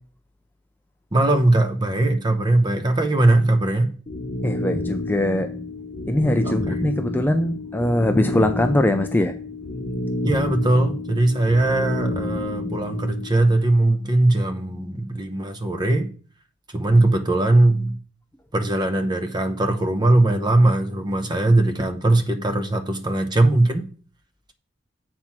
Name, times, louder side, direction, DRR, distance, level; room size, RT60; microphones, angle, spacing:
voice 1, 1.1-3.9 6.4-6.8 10.2-16.1 16.7-18.0 18.5-23.9, right 2 dB, 20° right, 0.8 m, -20 dB
sound 1, 4.1-13.3, left 2 dB, 30° left, 0.7 m, -29 dB
voice 2, 4.4-5.5 6.1-9.3, left 1 dB, 10° left, 0.4 m, -21 dB
7.6 x 4.4 x 5.9 m
head